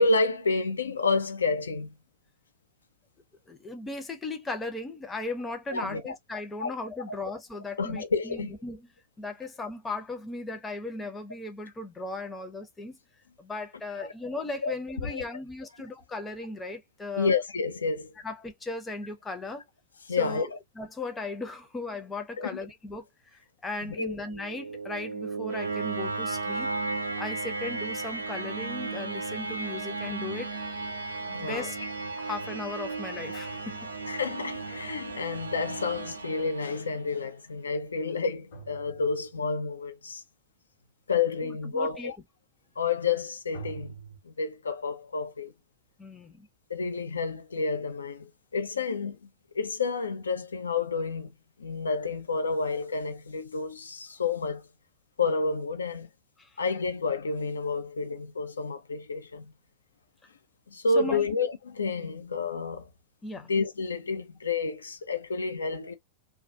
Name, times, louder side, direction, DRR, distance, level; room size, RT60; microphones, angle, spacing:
voice 1, 0.0-1.9 5.7-6.2 6.6-6.7 7.1-7.2 7.8-8.5 13.9-14.1 14.6-15.2 17.2-18.1 20.1-20.6 22.4-22.5 24.0-24.2 31.3-31.7 34.1-40.2 41.1-42.2 42.8-43.9 44.2-45.5 46.7-49.2 49.5-51.3 51.6-54.7 55.2-56.1 56.6-59.5 60.7-62.9 63.4-65.9, left 4 dB, 75° left, 0.4 m, -30 dB
voice 2, 3.5-8.9 9.2-13.0 13.4-17.3 18.2-19.6 20.2-23.1 23.3-26.7 27.2-30.5 31.3-31.8 32.2-33.9 41.4-42.1 46.0-46.5 56.4-56.5 61.0-61.3 63.2-63.5, left 2 dB, 15° left, 0.6 m, -37 dB
sound 1, 24.2-37.2, right 3 dB, 75° right, 0.5 m, -35 dB
sound 2, 33.5-36.8 38.5-39.6 43.5-44.2, right 4 dB, 55° left, 1.1 m, -47 dB
2.3 x 2.2 x 2.6 m
figure-of-eight pair, 90°, 0 cm